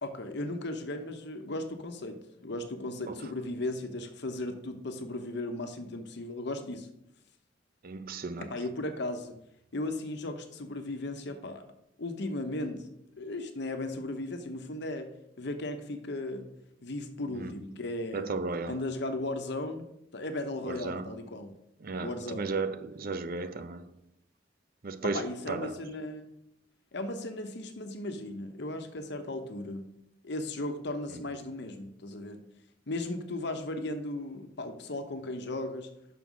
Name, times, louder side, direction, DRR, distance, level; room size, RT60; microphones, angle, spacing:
voice 1, 0.0-6.9 8.4-9.3 9.7-11.6 12.0-12.9 13.2-15.1 15.4-16.5 16.8-18.3 18.7-19.8 20.1-21.5 22.0-22.5 25.0-26.3 26.9-29.9 30.2-32.4 32.9-35.9, left 2 dB, 65° left, 0.9 m, -36 dB
voice 2, 7.8-8.5 17.3-17.6 18.1-18.8 20.6-21.2 21.8-23.9 24.8-25.8 31.1-31.2, right 3 dB, 50° right, 0.6 m, -35 dB
6.0 x 5.5 x 6.1 m
head